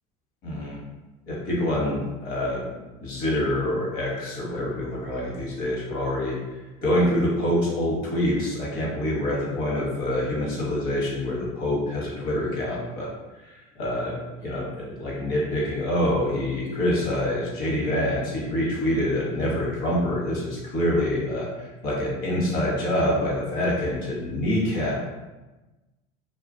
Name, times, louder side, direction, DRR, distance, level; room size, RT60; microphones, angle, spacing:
voice 1, 0.4-0.8 1.3-2.6 3.0-6.4 6.8-13.1 13.4-14.2 14.4-25.0, left 1 dB, 50° left, -4 dB, 1.1 m, -26 dB
2.6 x 2.4 x 2.6 m, 1.1 s
supercardioid pair, 125°, 20 cm